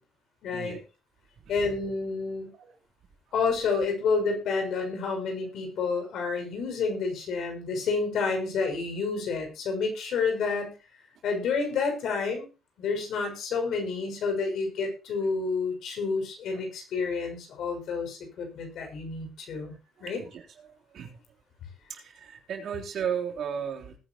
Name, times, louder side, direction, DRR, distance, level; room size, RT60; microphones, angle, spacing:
voice 1, 0.4-0.8 1.5-2.5 3.3-10.7 11.2-12.5 12.8-20.2, left 4 dB, 75° left, 3 dB, 5.9 m, -29 dB
voice 2, 20.0-20.4 20.9-21.2 21.9-24.0, right 8 dB, 70° right, 2 dB, 3.4 m, -34 dB
20.0 x 9.8 x 3.0 m, 0.31 s
cardioid pair, 90°, 0 cm